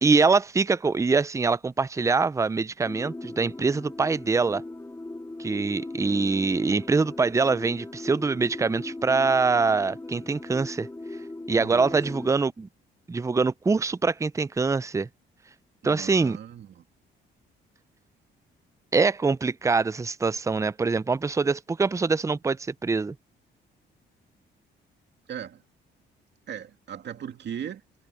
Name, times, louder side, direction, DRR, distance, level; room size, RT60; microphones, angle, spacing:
voice 1, 0.0-4.6 5.4-10.9 11.5-12.7 13.1-15.1 15.8-16.4 18.9-23.1, right 4 dB, 15° right, 0.5 m, -24 dB
sound 1, 2.8-12.3, left 2 dB, 15° left, 4.2 m, -39 dB
voice 2, 11.5-12.3 15.8-16.8 25.3-25.6 26.5-27.8, right 9 dB, 60° right, 2.4 m, -38 dB
cardioid pair, 90°, 20 cm